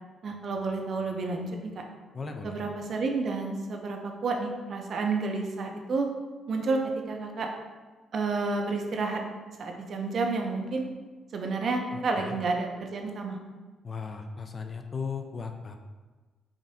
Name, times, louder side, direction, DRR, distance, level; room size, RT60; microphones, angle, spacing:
voice 1, 0.2-1.8 2.4-6.1 6.5-6.8 7.1-7.5 8.1-9.2 9.6-10.9 11.3-13.4, right 3 dB, 55° right, 2 dB, 0.6 m, -30 dB
voice 2, 2.1-2.6 11.9-12.4 13.8-15.7, left 5 dB, 40° left, 6 dB, 0.4 m, -37 dB
4.9 x 2.6 x 2.7 m, 1.3 s
cardioid pair, 90°, 0 cm